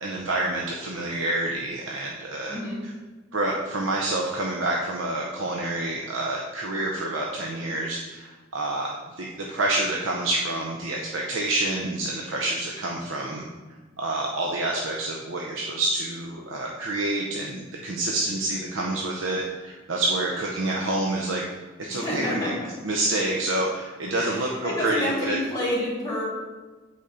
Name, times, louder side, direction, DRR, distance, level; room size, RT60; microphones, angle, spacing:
voice 1, 0.0-2.6 3.3-13.4 14.0-21.4 21.8-22.5 22.8-25.4, right 2 dB, 65° right, -1 dB, 0.7 m, -28 dB
voice 2, 2.5-2.8 21.9-22.7 24.1-26.3, left 1 dB, 20° left, -7 dB, 2.2 m, -29 dB
8.6 x 4.1 x 3.8 m, 1.3 s
head